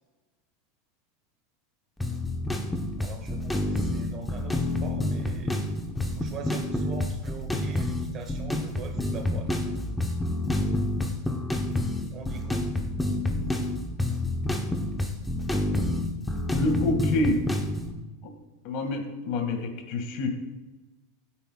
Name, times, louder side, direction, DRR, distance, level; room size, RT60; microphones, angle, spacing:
sound 1, 2.0-17.9, left 1 dB, 5° left, 0.8 m, -28 dB
voice 1, 3.0-5.6 6.1-9.5 12.1-12.6, right 6 dB, 30° right, 3 dB, 1.6 m, -43 dB
voice 2, 16.5-17.4 18.6-20.3, left 2 dB, 45° left, 5 dB, 1.8 m, -27 dB
15.5 x 9.2 x 2.3 m, 1.2 s
supercardioid pair, 160°, 0 cm